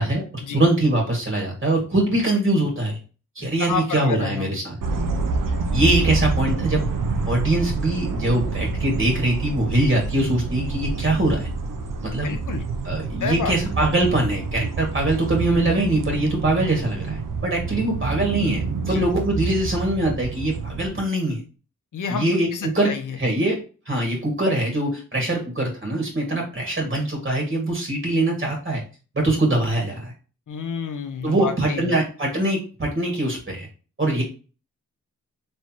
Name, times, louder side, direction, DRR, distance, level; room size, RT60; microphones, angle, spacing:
voice 1, 0.5-3.0 3.3-4.7 5.7-6.8 7.3-11.5 12.0-12.3 12.8-21.4 22.1-22.9 23.2-28.8 29.1-30.1 31.2-33.7 34.0-34.2, right 1 dB, 35° right, 0 dB, 1.7 m, -23 dB
voice 2, 3.4-4.6 12.2-12.7 13.2-13.6 18.8-19.0 21.9-23.2 30.5-32.0, left 6 dB, 65° left, 7 dB, 0.9 m, -30 dB
sound 1, 4.8-20.9, right 4 dB, 70° right, 0.8 m, -27 dB
4.4 x 3.2 x 2.8 m, 0.35 s
cardioid pair, 75°, 33 cm